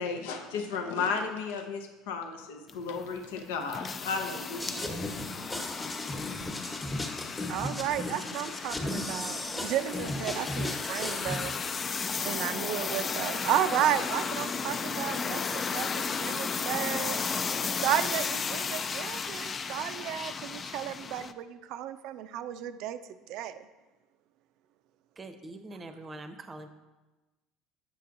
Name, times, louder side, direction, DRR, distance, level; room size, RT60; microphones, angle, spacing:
voice 1, 0.0-4.9, left 5 dB, 80° left, 4 dB, 0.6 m, -34 dB
sound 1, 2.7-21.3, left 5 dB, 35° left, 0.3 m, -34 dB
sound 2, 4.6-11.5, left 1 dB, 15° left, 1.0 m, -36 dB
voice 2, 7.5-17.5 17.8-23.0 23.3-23.7, right 11 dB, 65° right, 12 dB, 0.3 m, -33 dB
voice 3, 25.2-26.7, right 2 dB, 25° right, 8 dB, 0.7 m, -43 dB
8.3 x 5.6 x 2.5 m, 1.1 s
hypercardioid pair, 80°, 0 cm